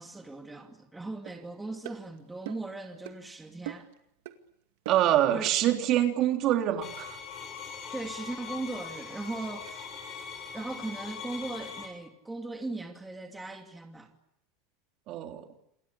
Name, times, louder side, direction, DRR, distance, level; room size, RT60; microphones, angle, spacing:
voice 1, 0.0-3.9 5.3-5.5 7.9-9.9 10.5-14.1, right 2 dB, 10° right, 2.6 m, -38 dB
sound 1, 1.3-1.4 1.8-2.0 2.5-2.7 3.0-3.2 3.7-4.0 4.3-4.4 4.9-5.1 5.4-5.6, right 14 dB, 75° right, 2.3 m, -41 dB
voice 2, 4.9-7.2 15.1-15.4, right 12 dB, 45° right, 3.6 m, -25 dB
sound 2, 6.8-11.9, left 6 dB, 40° left, 7.7 m, -41 dB
29.0 x 22.5 x 8.5 m
supercardioid pair, 135°, 0 cm